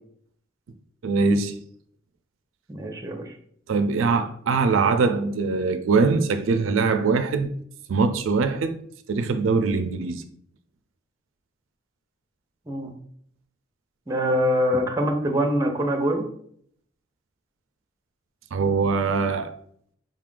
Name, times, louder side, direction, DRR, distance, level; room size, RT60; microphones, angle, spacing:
voice 1, 1.0-1.6 3.7-7.5 7.9-8.8 9.1-10.2 18.5-19.5, right 4 dB, 85° right, 0.4 m, -22 dB
voice 2, 2.7-3.3 12.7-12.9 14.1-16.3, equal, 15° right, 0.6 m, -24 dB
5.1 x 2.4 x 3.6 m
head